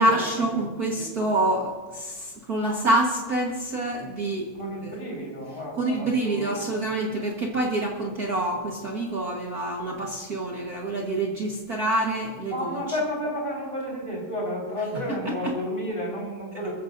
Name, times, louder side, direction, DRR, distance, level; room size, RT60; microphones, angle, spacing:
voice 1, 0.0-4.5 4.8-4.9 5.8-12.8, right 1 dB, 70° right, -2 dB, 0.8 m, -26 dB
voice 2, 0.6-1.1 4.5-6.6 12.5-16.7, equal, 15° left, -3 dB, 5.1 m, -31 dB
23.5 x 14.5 x 2.7 m, 1.4 s
omnidirectional pair, 4.1 m